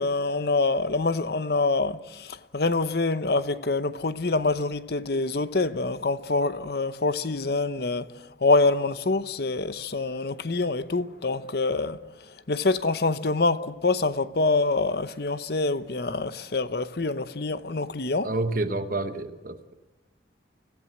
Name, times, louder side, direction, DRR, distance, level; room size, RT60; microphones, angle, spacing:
voice 1, 0.0-12.0 12.3-18.3, left 3 dB, 55° left, 0.8 m, -26 dB
voice 2, 18.2-19.7, right 2 dB, 45° right, 1.0 m, -29 dB
26.0 x 16.5 x 7.8 m
head